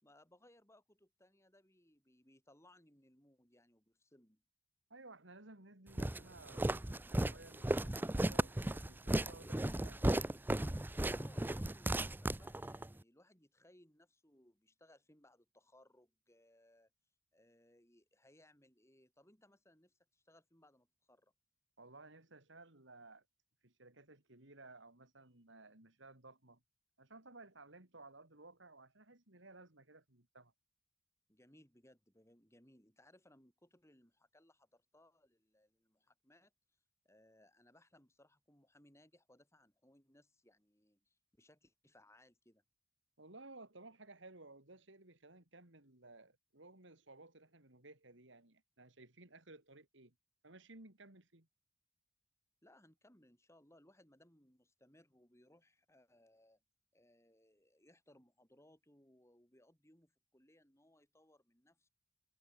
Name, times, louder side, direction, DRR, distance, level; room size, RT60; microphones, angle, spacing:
voice 1, 0.0-4.4 11.1-16.9 17.3-21.3 31.3-36.5 37.1-42.6 52.6-56.6 56.9-61.9, left 1 dB, 15° left, 6.8 m, -67 dB
voice 2, 4.9-10.0 21.8-23.2 23.6-26.6 27.0-30.5 43.2-50.1 50.4-51.5, right 2 dB, 65° right, 3.3 m, -58 dB
Walk footsteps, 6.0-12.9, right 1 dB, 10° right, 0.5 m, -35 dB
head